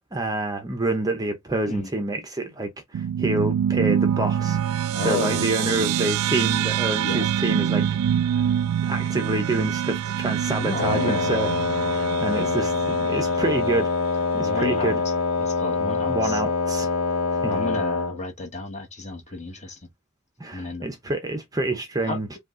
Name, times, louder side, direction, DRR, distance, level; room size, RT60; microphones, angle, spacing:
voice 1, 0.1-7.9 8.4-8.5 8.9-15.0 16.1-16.9 17.3-17.6 20.4-22.3, right 2 dB, 15° right, 0.7 m, -28 dB
sound 1, 2.9-13.7, right 9 dB, 85° right, 0.3 m, -25 dB
voice 2, 4.9-5.9 7.0-7.3 10.6-11.2 12.0-12.1 12.3-12.5 14.4-15.0 15.4-16.4 17.5-19.8 20.5-20.9 22.0-22.2, left 3 dB, 30° left, 1.3 m, -32 dB
Wind instrument woodwind instrument, 10.8-18.2, left 4 dB, 80° left, 1.2 m, -25 dB
5.1 x 2.4 x 3.7 m
head